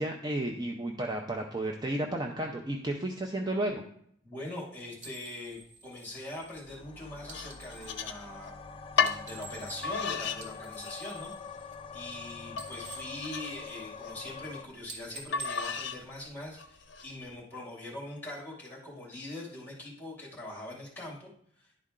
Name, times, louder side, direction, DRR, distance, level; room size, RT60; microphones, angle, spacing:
voice 1, 0.0-3.8, right 1 dB, 20° right, 1 dB, 0.5 m, -32 dB
voice 2, 4.2-8.5 9.0-21.3 21.6-21.7, left 1 dB, 10° left, -4 dB, 2.4 m, -42 dB
sound 1, 5.0-8.0 8.9-10.0 10.3-12.2 12.4-14.0 14.4-14.6 14.9-16.7, right 3 dB, 40° right, 1.2 m, -49 dB
sound 2, 6.7-14.6, left 5 dB, 25° left, 0.3 m, -45 dB
sound 3, 7.3-8.5 9.0-9.2 9.8-10.4 10.8-11.3 11.8-11.9 12.6-14.1 15.3-16.0 16.6-17.1, left 6 dB, 60° left, 0.6 m, -33 dB
10.5 x 4.2 x 3.7 m, 0.66 s
head